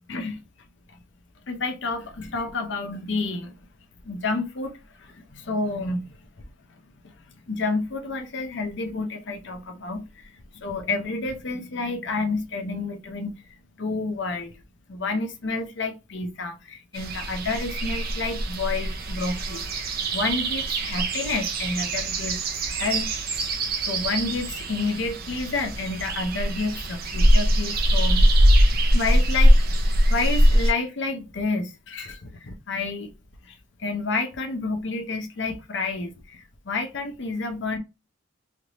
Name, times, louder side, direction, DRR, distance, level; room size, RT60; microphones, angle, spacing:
voice 1, 0.1-0.4 1.5-3.5 4.0-6.2 7.0-14.5 14.9-23.1 23.9-28.3 28.9-33.1 33.4-37.8, left 3 dB, 60° left, 0.6 m, -30 dB
sound 1, 16.9-30.7, equal, 50° right, 0.5 m, -22 dB
3.2 x 2.5 x 2.9 m
head